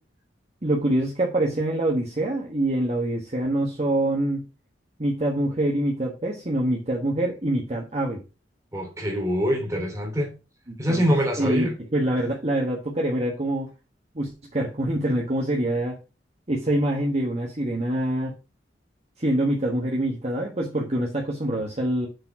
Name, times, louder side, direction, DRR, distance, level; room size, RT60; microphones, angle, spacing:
voice 1, 0.6-4.4 5.0-8.2 10.7-11.0 11.4-13.7 14.1-16.0 16.5-18.3 19.2-22.1, right 1 dB, 35° right, 1.4 m, -25 dB
voice 2, 8.7-10.3 10.8-11.7, equal, 15° right, 2.9 m, -24 dB
6.8 x 4.3 x 5.9 m
head